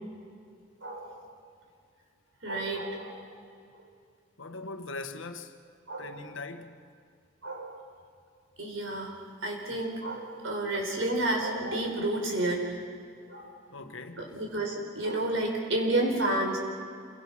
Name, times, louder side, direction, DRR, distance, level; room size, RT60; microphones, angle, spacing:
voice 1, 0.8-1.2 2.4-3.3 5.9-6.2 7.4-7.8 8.6-12.8 13.3-13.6 14.2-16.6, right 1 dB, 85° right, 4.9 m, -31 dB
voice 2, 4.4-5.6 6.0-6.8 13.7-14.4, left 3 dB, 85° left, 1.4 m, -41 dB
27.5 x 23.0 x 6.0 m
head